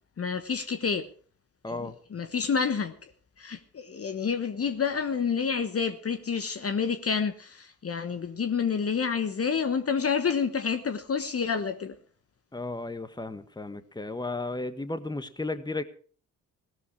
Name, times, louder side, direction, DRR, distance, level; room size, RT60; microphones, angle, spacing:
voice 1, 0.2-1.1 1.7-3.1 3.4-12.0, left 6 dB, 35° left, 1.3 m, -29 dB
voice 2, 1.6-2.0 12.5-15.8, left 2 dB, 10° left, 1.6 m, -34 dB
17.5 x 13.0 x 4.9 m
hypercardioid pair, 45°, 39 cm